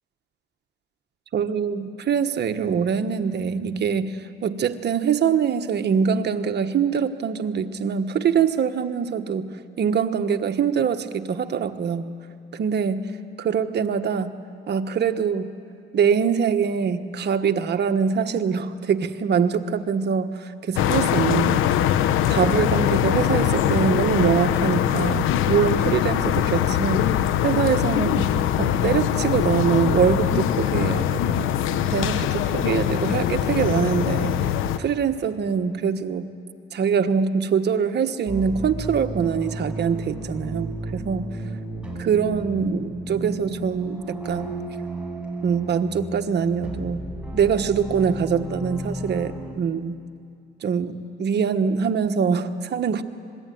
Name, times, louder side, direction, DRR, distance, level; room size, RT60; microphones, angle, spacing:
voice 1, 1.3-9.5 9.8-12.1 12.5-13.1 13.4-14.3 14.7-15.5 15.9-27.1 27.4-28.3 28.6-31.5 31.9-34.3 34.8-36.3 36.7-41.3 42.0-44.5 45.4-47.0 47.3-50.0 50.6-53.0, right 6 dB, 60° right, 7 dB, 1.4 m, -23 dB
sound 1, 20.8-34.8, left 10 dB, 90° left, 1.0 m, -22 dB
sound 2, 38.3-49.5, right 2 dB, 5° right, 6.9 m, -33 dB
25.5 x 21.5 x 9.4 m, 2.3 s
cardioid pair, 90°, 20 cm